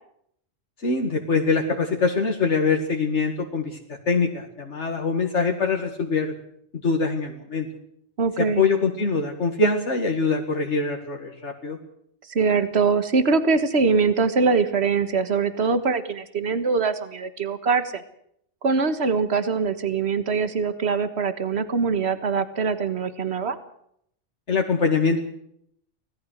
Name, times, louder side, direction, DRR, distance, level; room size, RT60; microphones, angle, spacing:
voice 1, 0.8-6.3 6.8-7.7 8.4-11.8 24.5-25.2, left 4 dB, 75° left, 3 dB, 2.4 m, -23 dB
voice 2, 8.2-8.6 12.3-18.0 18.6-23.6, right 5 dB, 65° right, 11 dB, 1.8 m, -23 dB
25.0 x 18.0 x 6.4 m, 0.71 s
omnidirectional pair, 1.2 m